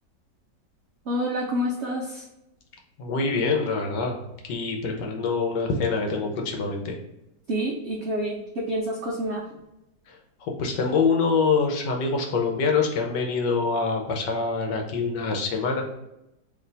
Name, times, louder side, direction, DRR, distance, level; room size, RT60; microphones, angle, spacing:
voice 1, 1.1-2.2 7.5-9.4, equal, 75° right, -2 dB, 0.6 m, -28 dB
voice 2, 3.0-4.2 4.5-7.0 10.1-15.8, left 4 dB, 75° left, 2 dB, 1.4 m, -25 dB
3.3 x 2.8 x 3.9 m, 0.89 s
omnidirectional pair, 1.9 m